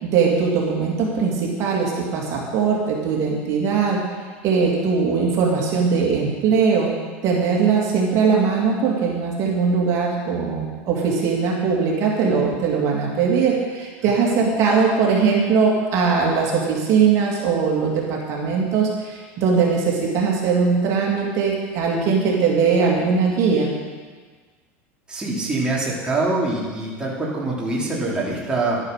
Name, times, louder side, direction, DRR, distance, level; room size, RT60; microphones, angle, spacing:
voice 1, 0.0-4.0 4.4-6.9 7.2-23.7, right 5 dB, 50° right, -2 dB, 2.8 m, -20 dB
voice 2, 25.1-28.8, right 2 dB, 10° right, -5 dB, 3.2 m, -24 dB
11.5 x 9.7 x 6.7 m, 1.5 s
supercardioid pair, 125°, 7 cm